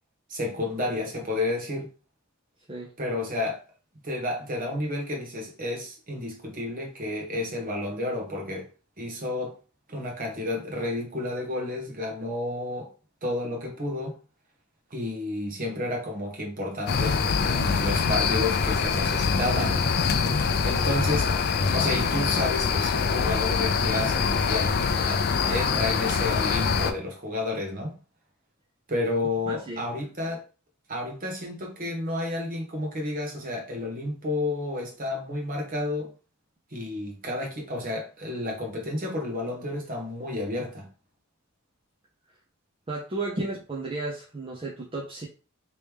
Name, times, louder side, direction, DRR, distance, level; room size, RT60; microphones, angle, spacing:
voice 1, 0.3-1.9 3.0-3.6 4.0-8.7 9.0-9.5 9.9-12.9 13.2-14.2 14.9-19.9 20.6-21.3 21.7-27.9 28.9-30.4 30.9-36.1 36.7-40.9, left 2 dB, 40° right, 1.2 m, -31 dB
sound 1, 16.9-26.9, left 5 dB, 50° left, 0.4 m, -24 dB
voice 2, 29.5-29.9 42.9-45.3, right 3 dB, 25° right, 0.6 m, -34 dB
3.1 x 3.1 x 3.4 m
head